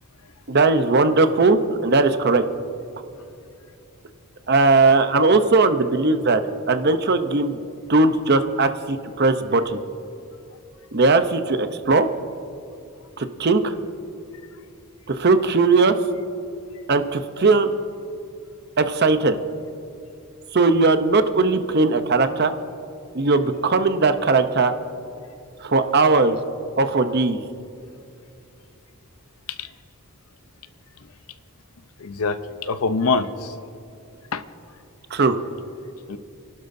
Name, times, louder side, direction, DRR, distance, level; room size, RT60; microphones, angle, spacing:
voice 1, 0.5-2.4 4.5-6.4 6.7-7.6 7.9-9.8 10.9-12.1 13.2-13.7 15.1-16.0 16.9-17.7 18.8-19.4 20.5-22.5 23.1-24.7 25.6-26.4 26.8-27.5 35.1-35.4, right 3 dB, 50° right, 9 dB, 0.7 m, -18 dB
voice 2, 32.0-33.5 34.3-34.4 36.1-36.2, left 4 dB, 85° left, 11 dB, 0.7 m, -24 dB
29.0 x 12.0 x 2.7 m, 2.6 s
head